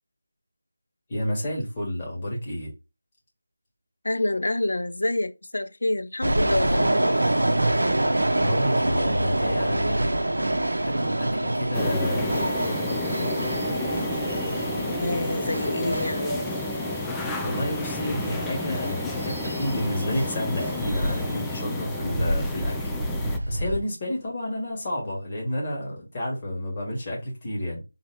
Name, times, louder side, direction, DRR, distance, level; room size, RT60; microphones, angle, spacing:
voice 1, 1.1-2.7 8.4-10.1 10.8-12.5 17.4-27.8, equal, 30° left, 1.8 m, -30 dB
voice 2, 4.0-7.3 15.0-16.4, left 2 dB, 70° left, 0.5 m, -27 dB
sound 1, 6.2-23.8, right 1 dB, 75° right, 0.6 m, -27 dB
sound 2, 11.7-23.4, left 2 dB, 5° left, 0.3 m, -31 dB
4.0 x 3.0 x 2.9 m
figure-of-eight pair, 165°, 0 cm